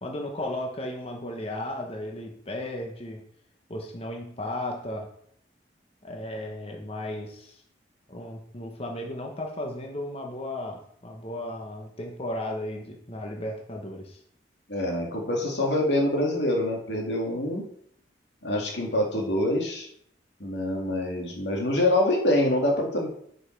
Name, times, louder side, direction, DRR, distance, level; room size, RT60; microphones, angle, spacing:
voice 1, 0.0-3.2 3.7-5.1 6.0-7.6 8.1-14.2, left 1 dB, 35° left, 2 dB, 1.1 m, -35 dB
voice 2, 14.7-17.7 18.4-19.9 20.4-23.1, left 1 dB, 80° left, 0 dB, 2.3 m, -25 dB
11.0 x 5.4 x 4.6 m, 0.66 s
head